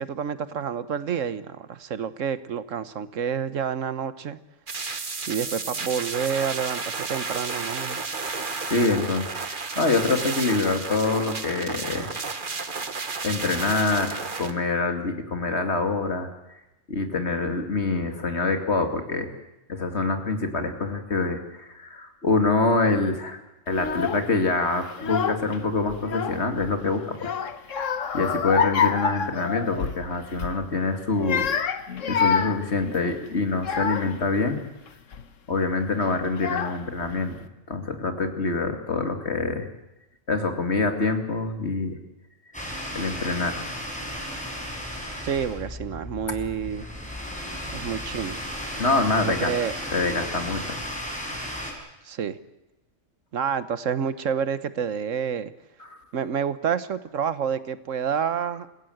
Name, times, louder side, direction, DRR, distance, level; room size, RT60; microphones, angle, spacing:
voice 1, 0.0-4.4 5.3-8.0 45.2-46.9 47.7-48.4 49.2-49.7 52.0-52.4 53.3-55.5 56.1-58.7, right 7 dB, 80° right, 14 dB, 1.4 m, -28 dB
sound 1, 4.7-14.5, right 4 dB, 40° right, 1.5 m, -32 dB
voice 2, 8.2-12.1 13.2-16.3 16.9-19.3 19.7-23.4 23.7-27.3 27.7-27.8 28.1-34.6 35.5-39.7 40.3-42.0 42.9-43.6 48.8-49.5 49.9-50.8, left 3 dB, 60° left, 6 dB, 2.7 m, -25 dB
Child speech kid speaking / Crying sobbing, 23.7-24.3 24.9-25.6 25.9-26.7 27.2-30.0 30.3-30.6 31.1-34.2 34.9-35.2 36.0-36.1 36.4-37.1, left 6 dB, 80° left, 1.5 m, -27 dB
sound 2, 42.5-51.7, equal, 5° left, 5.7 m, -34 dB
28.5 x 16.0 x 7.9 m, 0.96 s
omnidirectional pair, 1.3 m